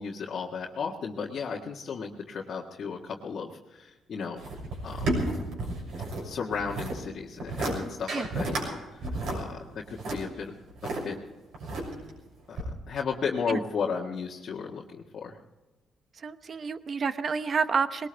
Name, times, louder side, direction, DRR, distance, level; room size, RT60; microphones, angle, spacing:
voice 1, 0.0-4.4 4.8-5.3 6.2-10.5 10.8-11.2 12.5-15.4, left 5 dB, 55° left, -2 dB, 1.6 m, -34 dB
sound 1, 4.4-6.2 6.5-7.0 7.4-7.7 8.1-8.7 9.0-11.0 11.5-12.1 12.6-12.7, right 2 dB, 75° right, 6.7 m, -31 dB
voice 2, 16.2-18.1, right 5 dB, 45° right, 12 dB, 0.9 m, -29 dB
20.5 x 18.5 x 3.4 m, 1.2 s
cardioid pair, 90°, 0 cm